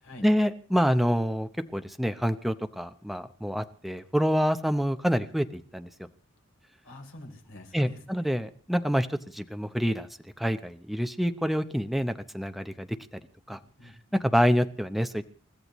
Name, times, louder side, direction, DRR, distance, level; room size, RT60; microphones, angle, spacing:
voice 1, 0.2-5.9 7.7-10.1 10.4-13.0 13.5-13.6 14.1-15.2, equal, ahead, 8 dB, 0.7 m, -27 dB
voice 2, 6.8-8.3 13.5-14.2, left 1 dB, 70° left, 2 dB, 3.6 m, -47 dB
29.0 x 14.0 x 3.1 m, 0.41 s
head